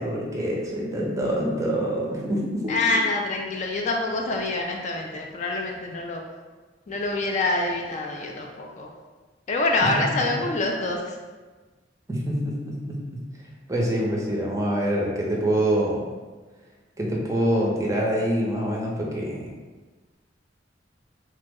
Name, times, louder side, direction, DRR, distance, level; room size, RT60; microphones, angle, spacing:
voice 1, 0.0-2.7 12.1-13.0 13.7-16.0 17.0-19.5, right 1 dB, 15° right, -2 dB, 0.5 m, -25 dB
voice 2, 2.7-6.2 6.9-8.9 9.5-11.2, left 2 dB, 40° left, 1 dB, 0.3 m, -26 dB
3.2 x 2.0 x 3.4 m, 1.3 s
head